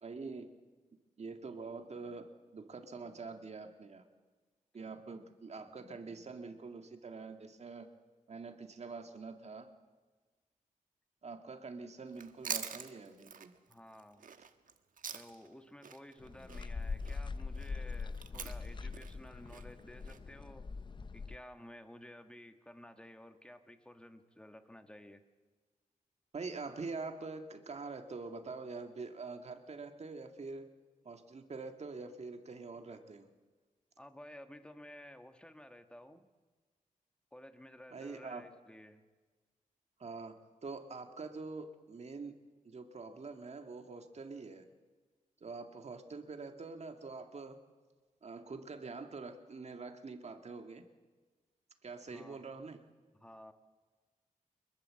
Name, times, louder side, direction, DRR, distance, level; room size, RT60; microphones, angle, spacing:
voice 1, 0.0-0.5 1.2-4.1 4.7-7.9 8.3-9.7 11.2-13.5 26.3-30.7 31.0-33.3 37.9-38.4 40.0-40.3 40.6-42.3 42.7-44.7 45.4-47.6 48.2-50.9 51.8-52.8, right 4 dB, 50° right, 6 dB, 2.0 m, -45 dB
Chewing mastication, 12.1-15.5 15.8-20.2, right 6 dB, 70° right, 1.4 m, -44 dB
voice 2, 13.7-14.2 15.1-20.7 21.1-25.2 34.0-36.3 37.3-39.0 52.1-52.4 53.1-53.5, left 1 dB, 5° left, 7 dB, 1.6 m, -53 dB
sound 1, 16.2-21.4, left 4 dB, 35° left, 0.6 m, -42 dB
24.0 x 21.5 x 7.7 m, 1.4 s
wide cardioid pair, 110°, 14 cm